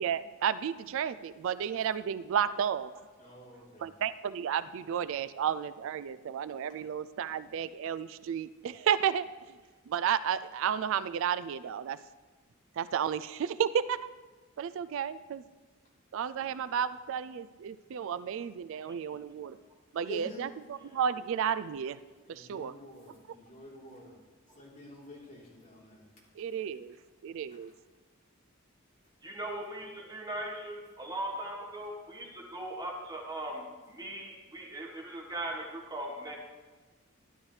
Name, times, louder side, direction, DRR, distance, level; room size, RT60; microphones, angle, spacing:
voice 1, 0.0-2.9 3.8-9.3 9.9-12.0 12.8-14.1 14.6-15.4 16.1-19.6 19.9-22.0 22.3-22.7 26.4-26.9 27.2-27.7, right 8 dB, 65° right, 14 dB, 0.3 m, -32 dB
voice 2, 3.2-3.9 16.4-16.6 20.0-20.4 22.2-24.1 24.6-26.0, right 1 dB, 40° left, -5 dB, 3.5 m, -47 dB
voice 3, 29.2-36.4, right 1 dB, 20° right, 0 dB, 1.4 m, -39 dB
12.5 x 11.5 x 3.2 m, 1.3 s
head